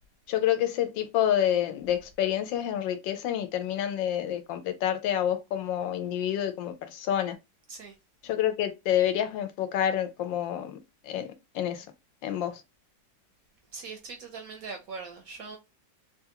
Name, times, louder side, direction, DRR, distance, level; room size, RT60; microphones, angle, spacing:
voice 1, 0.3-7.4 8.2-10.8 11.0-11.9 12.2-12.6, left 10 dB, 85° left, 1.3 m, -28 dB
voice 2, 13.7-15.6, right 4 dB, 65° right, 0.9 m, -41 dB
3.5 x 2.4 x 2.8 m
omnidirectional pair, 2.0 m